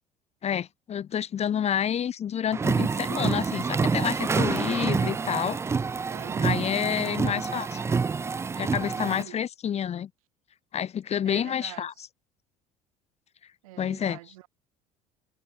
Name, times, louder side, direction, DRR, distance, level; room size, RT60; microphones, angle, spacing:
voice 1, 0.4-5.6 6.4-7.8 8.6-10.1 10.7-11.9 13.8-14.2, left 9 dB, 35° left, 1.2 m, -29 dB
sound 1, 2.5-9.2, right 5 dB, 15° right, 0.4 m, -27 dB
voice 2, 6.1-7.2 8.9-9.4 11.2-11.9 13.6-14.5, right 18 dB, 65° right, 7.7 m, -45 dB
figure-of-eight pair, 60°, 19 cm